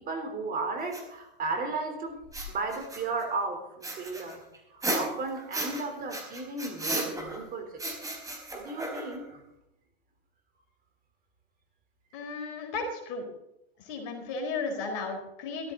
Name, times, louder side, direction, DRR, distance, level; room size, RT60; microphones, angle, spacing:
voice 1, 0.0-2.2 2.5-4.4 4.7-8.1 8.5-9.4, right 3 dB, 30° right, 4 dB, 3.9 m, -34 dB
sound 1, 0.9-1.0 2.2-3.2 3.8-5.8 6.1-7.4 7.8-9.3, right 1 dB, 10° right, 4.3 m, -34 dB
voice 2, 12.1-13.3 13.8-15.7, left 4 dB, 50° left, 3 dB, 4.4 m, -34 dB
16.0 x 14.0 x 4.0 m, 0.85 s
hypercardioid pair, 105°, 30 cm